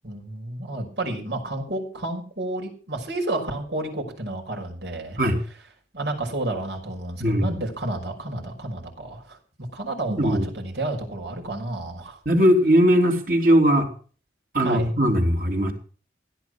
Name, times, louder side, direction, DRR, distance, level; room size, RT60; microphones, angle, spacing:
voice 1, 0.0-5.2 5.9-9.4 9.7-12.2 14.6-14.9, right 2 dB, 80° right, 1 dB, 5.9 m, -31 dB
voice 2, 10.1-10.5 12.3-13.9 14.5-15.7, equal, 50° right, 3 dB, 3.6 m, -19 dB
16.5 x 9.7 x 6.3 m, 0.40 s
head